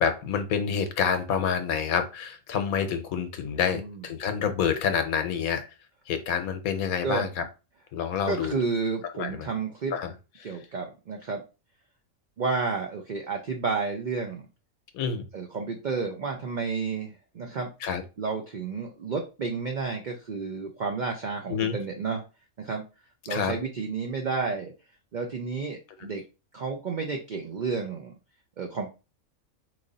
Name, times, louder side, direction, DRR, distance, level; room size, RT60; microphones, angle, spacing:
voice 1, 0.0-5.7 6.1-7.4 7.9-8.6 9.1-9.5 9.9-10.1 10.4-10.5 14.9-15.3 17.8-18.0 21.5-21.8 23.3-23.5, left 7 dB, 80° left, 8 dB, 1.1 m, -28 dB
voice 2, 8.3-9.9 10.4-11.4 12.4-14.4 15.3-17.7 18.2-22.2 22.6-22.8 23.3-24.7 25.1-26.2 26.5-28.1 28.6-28.9, right 4 dB, 80° right, 3 dB, 0.4 m, -31 dB
3.1 x 2.5 x 3.9 m, 0.30 s
omnidirectional pair, 1.5 m